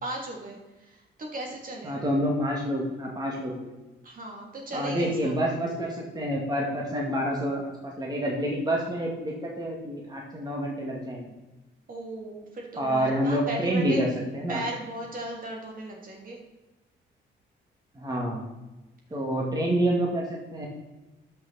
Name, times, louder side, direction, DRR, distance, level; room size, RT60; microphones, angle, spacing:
voice 1, 0.0-2.0 4.0-5.3 11.9-14.0 14.5-16.4, right 1 dB, 45° right, 0 dB, 2.9 m, -36 dB
voice 2, 1.8-3.8 4.7-11.3 12.8-14.1 14.3-14.6 18.0-18.5 19.1-20.2 20.5-20.7, right 1 dB, 20° right, -2 dB, 2.3 m, -28 dB
12.0 x 6.0 x 4.2 m, 1.1 s
cardioid pair, 90°, 20 cm